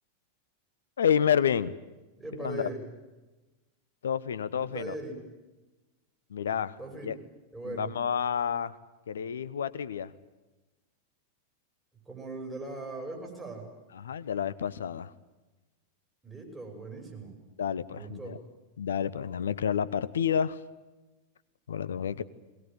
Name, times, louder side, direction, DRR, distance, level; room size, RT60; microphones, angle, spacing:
voice 1, 1.0-1.7 2.4-2.7 4.0-4.9 6.3-6.8 7.0-7.1 7.6-8.8 9.1-10.1 14.0-15.1 17.6-18.4 18.8-20.6 21.7-22.2, left 8 dB, 65° left, 17 dB, 1.0 m, -29 dB
voice 2, 2.1-2.8 4.7-5.2 6.8-7.2 7.5-7.9 12.0-13.7 16.2-17.4 17.9-18.4, right 2 dB, 10° right, 1 dB, 6.5 m, -39 dB
22.0 x 19.5 x 9.2 m, 1.1 s
figure-of-eight pair, 90°, 0 cm